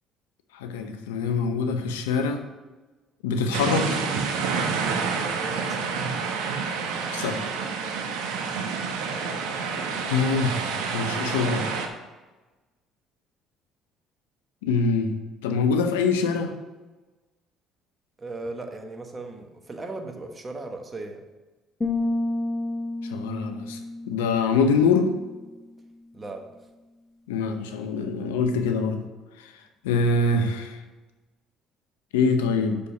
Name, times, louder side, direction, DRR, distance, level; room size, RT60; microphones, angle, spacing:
voice 1, 0.5-2.4 3.2-4.0 7.1-7.4 10.1-11.7 14.6-15.1 15.4-16.5 23.1-23.8 24.1-25.1 27.3-29.0 29.4-29.5 29.8-30.8 32.1-32.8, left 4 dB, 90° left, 6 dB, 0.7 m, -24 dB
sound 1, 3.5-11.9, right 5 dB, 80° right, 1.0 m, -28 dB
voice 2, 5.3-5.9 18.2-21.2 26.1-26.5, right 2 dB, 30° right, 4 dB, 1.3 m, -37 dB
sound 2, 21.8-25.5, left 2 dB, 20° left, 1.2 m, -30 dB
6.3 x 5.5 x 5.6 m, 1.2 s
hypercardioid pair, 65°, 0 cm